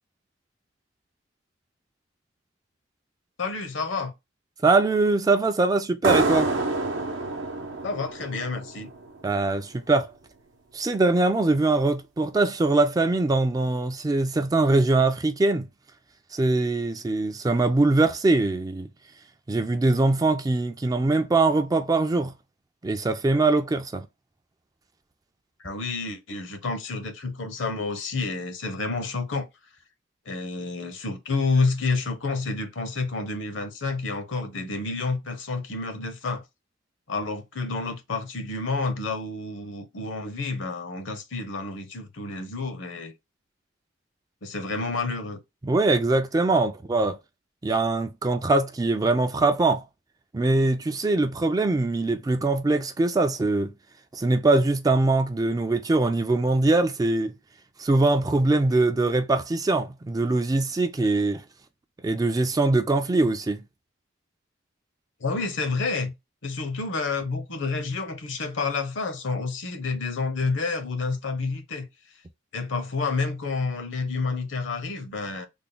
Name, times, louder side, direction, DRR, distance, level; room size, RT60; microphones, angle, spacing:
voice 1, 3.4-4.1 7.8-8.9 25.6-29.5 30.2-36.4 37.1-43.1 44.4-45.4 65.2-66.1 66.4-71.9 72.5-75.5, left 3 dB, 70° left, 0.8 m, -29 dB
voice 2, 4.6-6.5 9.2-10.1 10.7-15.7 16.3-18.9 19.5-22.3 22.8-24.1 45.6-47.2 47.6-49.8 50.3-53.7 54.1-57.3 57.8-61.4 62.0-63.6, right 2 dB, 20° right, 0.3 m, -22 dB
sound 1, 6.0-9.4, right 2 dB, 80° right, 0.7 m, -27 dB
3.5 x 2.1 x 3.7 m
head